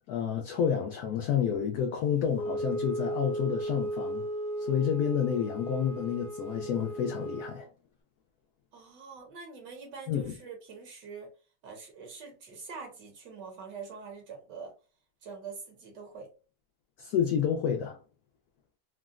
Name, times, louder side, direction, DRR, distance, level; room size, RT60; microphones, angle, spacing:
voice 1, 0.0-4.3 4.6-7.7 10.1-10.3 17.0-18.0, left 8 dB, 75° left, 0.9 m, -29 dB
Wind instrument woodwind instrument, 2.3-7.6, right 1 dB, 35° left, 0.9 m, -35 dB
voice 2, 8.7-11.3 11.6-14.7 15.2-16.3, right 5 dB, 70° right, 1.4 m, -44 dB
3.8 x 2.0 x 2.4 m
omnidirectional pair, 2.0 m